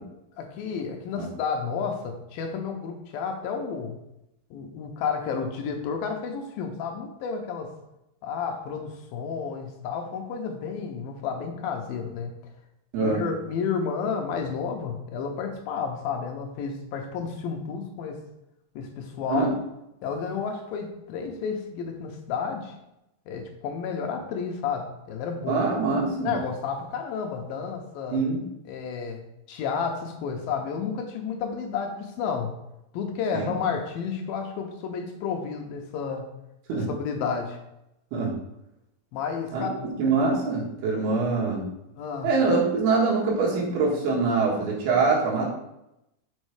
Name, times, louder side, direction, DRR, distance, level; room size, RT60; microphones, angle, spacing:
voice 1, 0.4-4.0 4.5-7.7 8.2-12.5 13.0-18.2 18.8-19.5 20.0-22.7 23.3-28.2 28.7-29.2 29.5-32.5 32.9-36.3 36.7-37.6 39.1-39.7 41.9-42.3, left 6 dB, 75° left, 3 dB, 2.6 m, -31 dB
voice 2, 25.5-26.3 28.1-28.4 33.3-33.5 36.7-36.9 38.1-38.3 39.5-41.7 42.2-45.5, right 4 dB, 90° right, -3 dB, 3.7 m, -24 dB
6.4 x 5.5 x 4.8 m, 0.86 s
omnidirectional pair, 4.4 m